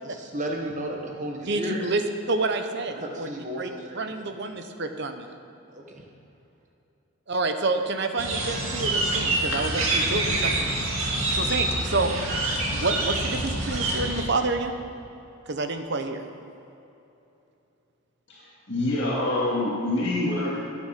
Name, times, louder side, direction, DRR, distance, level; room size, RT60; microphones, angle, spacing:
voice 1, 0.0-1.8 3.0-4.1 5.7-6.0, right 1 dB, 35° right, 1 dB, 1.2 m, -34 dB
voice 2, 1.5-3.3 3.6-3.7 3.9-5.3 7.3-10.9 11.3-12.1 12.7-14.8 15.5-16.2, right 3 dB, 50° right, 6 dB, 1.0 m, -28 dB
sound 1, 8.2-14.2, right 2 dB, 70° right, 2.1 m, -26 dB
voice 3, 18.3-20.6, left 2 dB, 55° left, -6 dB, 2.1 m, -26 dB
14.0 x 9.5 x 5.9 m, 2.9 s
head